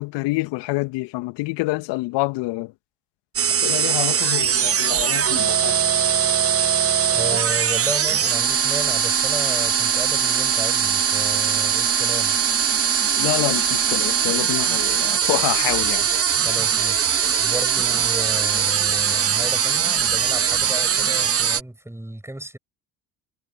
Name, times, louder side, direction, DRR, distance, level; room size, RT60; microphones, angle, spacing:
voice 1, 0.0-2.7 3.5-5.8 13.2-16.1, left 22 dB, 60° left, 1.9 m, -27 dB
sound 1, 3.4-21.6, right 8 dB, 30° right, 1.4 m, -21 dB
voice 2, 7.1-12.4 16.4-22.6, right 1 dB, 5° right, 7.9 m, -34 dB
hypercardioid pair, 65°, 47 cm